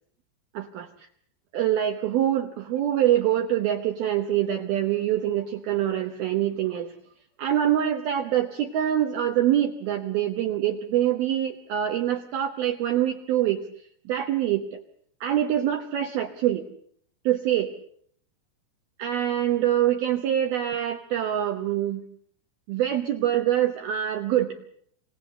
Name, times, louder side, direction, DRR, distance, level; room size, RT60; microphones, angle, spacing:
voice 1, 0.5-1.1 1.5-6.9 7.4-13.7 14.1-14.8 15.2-16.7 17.2-17.7 19.0-22.0 22.7-24.6, right 11 dB, 85° right, 6 dB, 2.1 m, -25 dB
29.0 x 17.0 x 6.7 m, 0.63 s
omnidirectional pair, 6.0 m